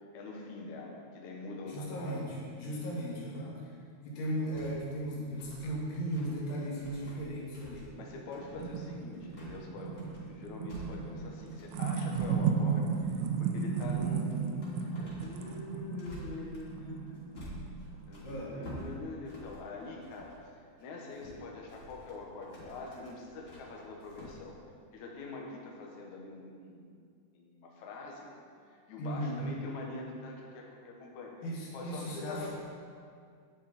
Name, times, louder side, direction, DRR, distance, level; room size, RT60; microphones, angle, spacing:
voice 1, 0.0-2.3 5.6-5.7 8.0-17.3 18.1-20.3 20.8-24.6 24.9-26.9 27.3-28.3 28.9-31.4 31.7-32.5, left 3 dB, 90° left, -1 dB, 1.6 m, -44 dB
voice 2, 1.7-2.2 2.6-3.6 4.1-7.8 18.2-18.5 29.0-29.4 31.4-32.5, equal, 70° left, -5 dB, 4.4 m, -36 dB
sound 1, 4.5-20.4 20.8-24.4, equal, 35° left, 2.7 m, -50 dB
sound 2, 8.0-18.1, right 6 dB, 90° right, 3.2 m, -34 dB
9.9 x 9.6 x 4.3 m, 2.2 s
omnidirectional pair, 5.5 m